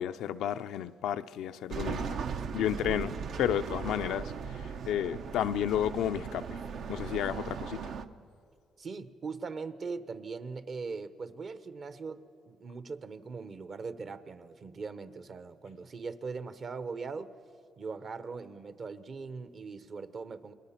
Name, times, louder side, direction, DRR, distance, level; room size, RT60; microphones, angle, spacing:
voice 1, 0.0-2.2 2.5-6.6 6.9-7.9, left 10 dB, 85° left, 0.5 m, -32 dB
sound 1, 1.7-8.1, right 6 dB, 70° right, 0.8 m, -38 dB
voice 2, 8.8-17.3 17.8-20.5, right 4 dB, 50° right, 1.0 m, -40 dB
28.5 x 21.5 x 5.9 m
cardioid pair, 90°, 0 cm